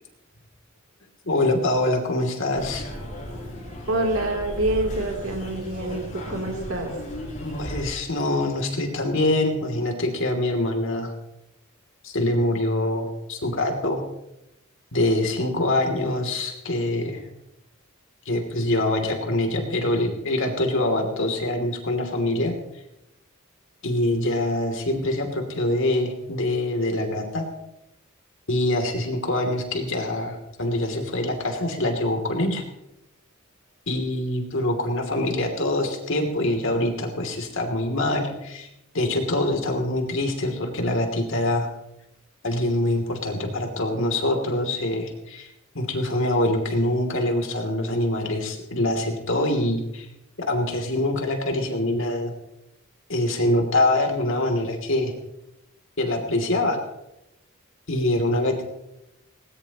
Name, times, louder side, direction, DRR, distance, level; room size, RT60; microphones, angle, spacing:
voice 1, 1.2-2.9 7.4-11.1 12.0-14.0 14.9-17.3 18.2-22.5 23.8-27.4 28.5-32.6 33.9-38.7 38.9-41.7 42.4-45.5 45.7-50.1 50.5-52.3 53.1-55.1 56.0-56.8 57.9-58.6, left 1 dB, 65° left, 3 dB, 3.0 m, -24 dB
sound 1, 2.5-7.8, equal, 35° left, 7.1 m, -35 dB
voice 2, 3.9-6.9, right 1 dB, 70° right, 2 dB, 3.4 m, -26 dB
19.0 x 19.0 x 3.0 m, 0.86 s
head